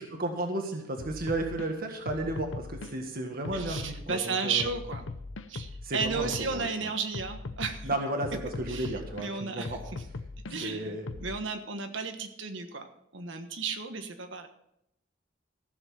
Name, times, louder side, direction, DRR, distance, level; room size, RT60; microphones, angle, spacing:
voice 1, 0.0-4.7 5.8-6.9 7.8-9.8 10.6-11.1, right 2 dB, 50° right, 3 dB, 1.6 m, -33 dB
sound 1, 1.0-1.7 2.1-2.9 3.4-4.2 4.6-6.7 7.1-9.3 9.6-11.4, left 3 dB, 75° left, 0.8 m, -40 dB
voice 2, 3.5-5.1 5.5-7.9 8.7-8.9 9.2-10.0 10.5-10.9 11.2-12.9 13.1-14.5, right 4 dB, 70° right, 6 dB, 1.4 m, -33 dB
15.0 x 7.1 x 5.6 m, 0.76 s
head